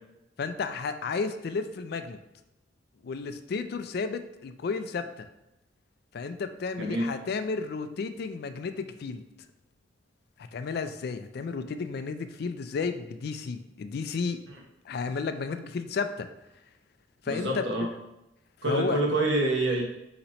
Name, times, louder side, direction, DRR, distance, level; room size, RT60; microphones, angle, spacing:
voice 1, 0.4-2.2 3.0-5.3 6.1-9.2 10.5-14.4 14.9-16.3 17.2-17.7 18.6-19.0, left 4 dB, 60° left, 9 dB, 0.3 m, -32 dB
voice 2, 6.8-7.1 17.3-17.9 18.6-19.8, right 1 dB, 80° right, -1 dB, 1.0 m, -26 dB
4.0 x 2.9 x 4.3 m, 0.91 s
head